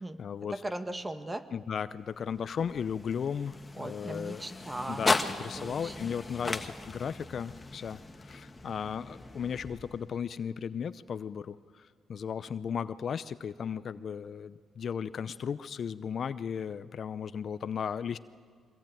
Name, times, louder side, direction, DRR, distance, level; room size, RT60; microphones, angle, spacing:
voice 1, 0.0-0.6 1.5-4.4 4.9-18.2, left 7 dB, 55° left, 14 dB, 0.6 m, -36 dB
voice 2, 0.6-1.4 3.8-5.2 5.6-6.1, right 1 dB, 15° right, 9 dB, 1.7 m, -38 dB
sound 1, 2.0-10.3, left 3 dB, 20° left, 1.5 m, -37 dB
24.0 x 21.0 x 9.2 m, 2.1 s
cardioid pair, 90°, 0 cm